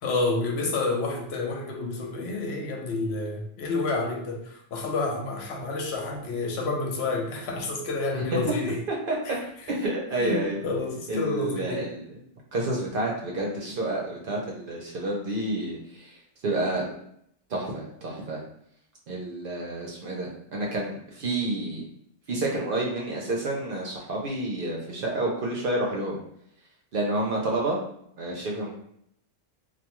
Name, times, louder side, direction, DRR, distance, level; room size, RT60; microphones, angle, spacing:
voice 1, 0.0-8.8 9.3-9.7 10.2-11.9, left 3 dB, 65° left, 2 dB, 0.7 m, -29 dB
voice 2, 9.7-10.6 11.1-12.2 12.5-16.1 16.4-16.9 17.5-18.4 19.1-21.9 22.3-26.2 26.9-27.8 28.2-28.7, right 2 dB, 55° right, -2 dB, 0.6 m, -29 dB
2.4 x 2.2 x 2.9 m, 0.70 s
omnidirectional pair, 1.3 m